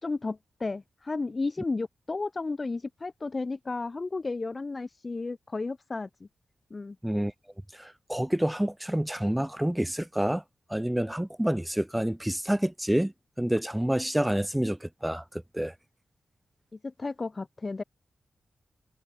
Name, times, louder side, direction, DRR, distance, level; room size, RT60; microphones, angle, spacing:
voice 1, 0.0-6.3 6.7-7.0 16.8-17.8, left 3 dB, 35° left, 3.2 m, -33 dB
voice 2, 7.8-10.4 10.7-13.1 13.4-15.2 15.5-15.7, right 1 dB, 5° right, 2.0 m, -28 dB
cardioid pair, 85°, 0 cm